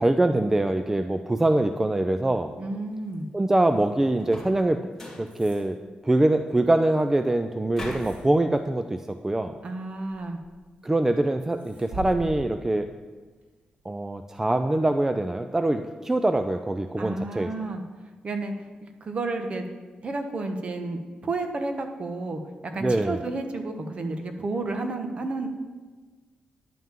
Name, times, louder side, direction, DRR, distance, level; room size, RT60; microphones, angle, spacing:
voice 1, 0.0-2.5 3.3-4.8 5.2-5.8 6.0-9.6 10.8-12.9 13.9-17.5 22.8-23.2, right 1 dB, 15° right, 8 dB, 0.4 m, -24 dB
sound 1, 2.5-13.9, right 2 dB, 80° right, 3.3 m, -47 dB
voice 2, 2.6-3.3 9.6-10.4 17.0-17.8 18.2-18.5 19.0-19.6 20.0-25.7, right 2 dB, 45° right, 5 dB, 1.2 m, -31 dB
sound 2, 4.2-4.6 4.9-5.3 7.7-8.2, left 1 dB, 15° left, 2.8 m, -38 dB
11.0 x 5.7 x 7.4 m, 1.3 s
cardioid pair, 110°, 3 cm